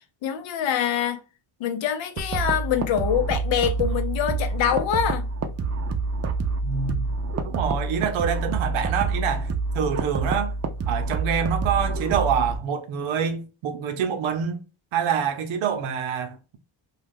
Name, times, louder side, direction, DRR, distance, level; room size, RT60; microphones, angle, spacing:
voice 1, 0.2-1.2 1.6-5.3, left 9 dB, 70° left, 0.7 m, -25 dB
sound 1, 2.2-12.6, right 3 dB, 35° right, 0.5 m, -27 dB
voice 2, 6.6-7.2 7.4-9.5 9.7-10.5 10.9-14.6 14.9-16.6, right 7 dB, 80° right, 0.7 m, -26 dB
2.3 x 2.3 x 3.4 m
cardioid pair, 95°, 48 cm